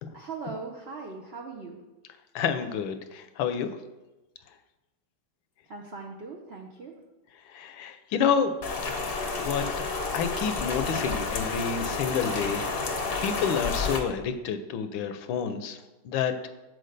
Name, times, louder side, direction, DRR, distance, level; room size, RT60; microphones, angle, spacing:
voice 1, 0.1-1.8 5.7-6.9, right 4 dB, 70° right, 0 dB, 0.5 m, -39 dB
voice 2, 2.3-3.7 7.5-8.5 8.8-8.9 9.4-9.7 10.1-12.6 13.2-15.8 16.0-16.3, left 7 dB, 75° left, 10 dB, 1.4 m, -29 dB
Rain, 8.6-14.0, left 4 dB, 45° left, 0.7 m, -30 dB
7.7 x 4.5 x 6.5 m, 1.1 s
omnidirectional pair, 2.2 m